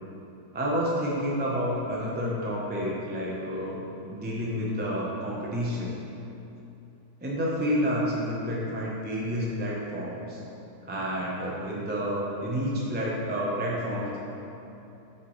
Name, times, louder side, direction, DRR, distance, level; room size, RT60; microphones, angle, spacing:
voice 1, 0.5-6.0 7.2-10.4 10.9-14.2, equal, 10° right, -5 dB, 0.4 m, -29 dB
8.1 x 5.9 x 3.2 m, 2.8 s
omnidirectional pair, 1.9 m